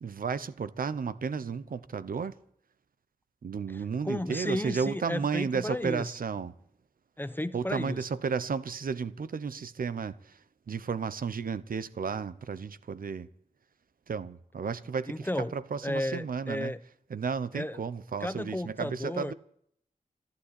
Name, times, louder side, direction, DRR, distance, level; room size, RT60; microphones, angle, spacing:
voice 1, 0.0-2.4 3.4-6.5 7.5-10.4 10.7-13.3 14.1-16.7 17.1-19.3, right 5 dB, 85° right, 0.8 m, -33 dB
voice 2, 3.7-6.1 7.2-8.0 15.1-15.5 15.8-16.8 17.5-17.9 18.2-19.3, left 1 dB, 15° left, 0.8 m, -33 dB
14.5 x 12.0 x 8.3 m
wide cardioid pair, 75°, 14 cm